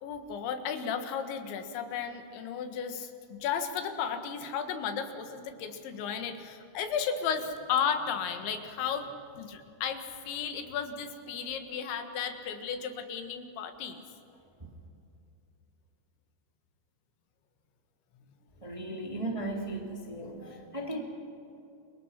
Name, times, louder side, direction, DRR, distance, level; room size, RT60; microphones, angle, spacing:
voice 1, 0.0-14.0, left 7 dB, 85° left, 7 dB, 3.9 m, -34 dB
voice 2, 18.6-21.0, right 2 dB, 10° right, 0 dB, 2.1 m, -36 dB
29.5 x 24.0 x 5.9 m, 2.7 s
omnidirectional pair, 5.1 m